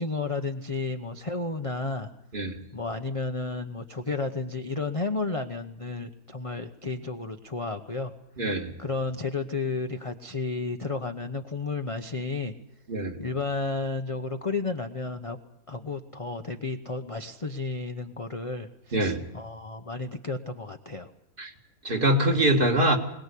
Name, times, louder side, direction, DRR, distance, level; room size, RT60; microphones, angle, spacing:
voice 1, 0.0-2.1 2.7-8.1 8.8-12.5 13.2-15.4 15.7-21.1, left 3 dB, 25° left, 5 dB, 0.8 m, -32 dB
voice 2, 8.4-8.7 12.9-13.2 18.9-19.2 21.4-21.5 21.8-23.0, right 1 dB, 35° right, 3 dB, 2.2 m, -24 dB
22.0 x 19.5 x 8.4 m, 0.81 s
omnidirectional pair, 1.6 m